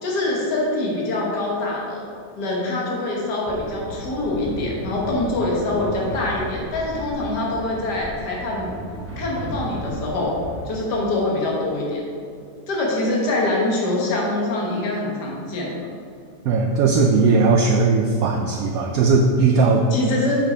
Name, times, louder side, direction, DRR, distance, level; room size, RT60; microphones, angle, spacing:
voice 1, 0.0-2.1 2.4-8.7 9.2-10.4 10.7-12.0 12.7-15.7 19.9-20.4, left 2 dB, 85° left, -3 dB, 1.9 m, -24 dB
sound 1, 3.5-10.7, right 1 dB, 10° right, 0.8 m, -35 dB
voice 2, 16.4-19.8, right 4 dB, 70° right, 1 dB, 1.0 m, -18 dB
7.5 x 5.0 x 5.1 m, 2.4 s
omnidirectional pair, 1.7 m